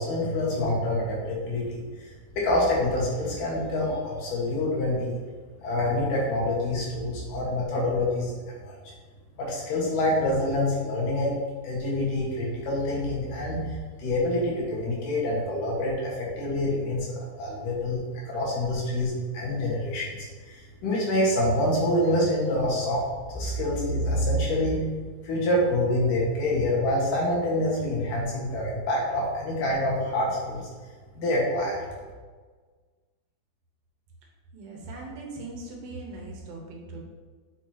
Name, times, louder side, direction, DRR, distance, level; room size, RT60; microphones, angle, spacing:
voice 1, 0.0-5.2 5.6-8.3 8.6-8.9 9.4-11.4 11.6-17.1 17.4-18.0 18.3-23.0 23.3-24.8 25.2-30.7 31.2-31.9, left 1 dB, 65° left, -4 dB, 2.9 m, -26 dB
voice 2, 34.5-37.0, right 2 dB, 80° right, -1 dB, 3.0 m, -40 dB
7.4 x 6.5 x 2.9 m, 1.5 s
omnidirectional pair, 4.3 m